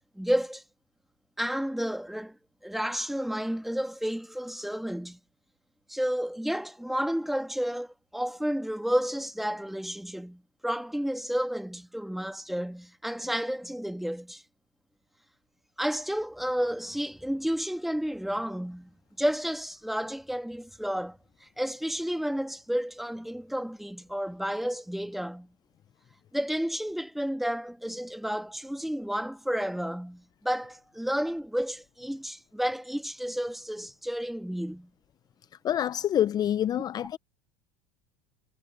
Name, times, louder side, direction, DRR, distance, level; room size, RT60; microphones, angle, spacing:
voice 1, 0.2-0.6 1.4-2.4 2.6-5.2 5.9-14.4 15.8-25.5 26.3-34.9, equal, ahead, 1.7 m, -31 dB
voice 2, 35.6-37.2, left 11 dB, 35° left, 0.6 m, -26 dB
hypercardioid pair, 95°, 11 cm